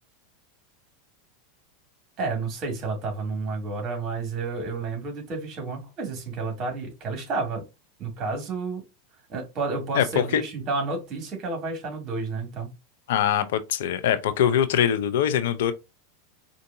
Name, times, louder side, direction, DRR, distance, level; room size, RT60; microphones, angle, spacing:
voice 1, 2.2-7.6 8.0-8.8 9.3-12.7, right 3 dB, 40° right, 2.1 m, -30 dB
voice 2, 9.9-10.4 13.1-15.7, left 9 dB, 70° left, 0.5 m, -23 dB
4.5 x 2.6 x 2.6 m
hypercardioid pair, 95°, 0 cm